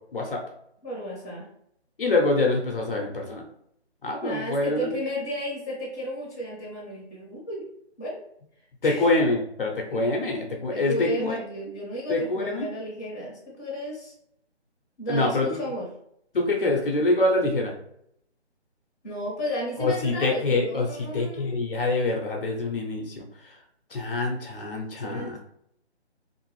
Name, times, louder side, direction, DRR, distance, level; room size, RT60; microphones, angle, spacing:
voice 1, 0.8-1.5 4.2-7.6 8.0-8.2 8.8-9.1 9.9-10.0 10.7-14.1 15.0-15.9 19.0-21.6 25.0-25.4, equal, 15° left, -7 dB, 0.7 m, -33 dB
voice 2, 2.0-3.4 4.0-4.9 8.8-11.4 12.1-12.7 15.1-15.6 16.3-17.7 19.8-23.2 23.9-25.4, left 2 dB, 55° left, 0 dB, 0.6 m, -25 dB
2.6 x 2.5 x 3.0 m, 0.73 s
figure-of-eight pair, 160°, 34 cm